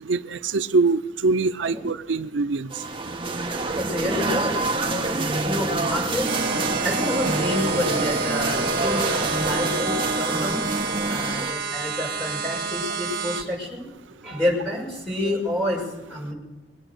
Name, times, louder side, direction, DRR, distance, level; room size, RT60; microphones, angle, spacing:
voice 1, 0.1-2.7 15.2-15.4, right 3 dB, 80° right, 11 dB, 0.5 m, -23 dB
sound 1, 2.7-11.5, right 2 dB, 25° right, 1.0 m, -26 dB
voice 2, 3.8-4.7 5.1-6.3 6.8-10.6 11.1-13.8 14.2-15.8 16.1-16.3, left 1 dB, 5° left, -3 dB, 5.6 m, -28 dB
sound 2, 6.2-13.4, right 4 dB, 55° right, 1.3 m, -29 dB
22.5 x 8.9 x 6.5 m, 1.2 s
head